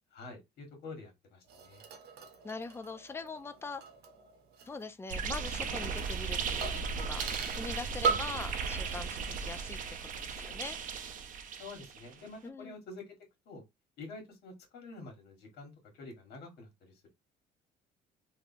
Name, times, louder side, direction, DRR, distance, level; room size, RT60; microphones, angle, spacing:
voice 1, 0.1-1.8 11.6-13.1 13.4-13.6 14.0-17.1, left 3 dB, 75° left, 1.4 m, -48 dB
sound 1, 1.4-4.8 5.1-5.2 6.6-7.7 8.0-8.5 8.7-9.3 9.6-9.7, right 6 dB, 75° right, 0.9 m, -38 dB
voice 2, 2.4-3.8 4.7-7.2 7.5-9.8 10.2-10.8 12.4-12.8, left 4 dB, 15° left, 0.4 m, -42 dB
sound 2, 5.1-12.1, right 6 dB, 50° right, 0.5 m, -37 dB
3.2 x 2.4 x 2.5 m
cardioid pair, 110°, 17 cm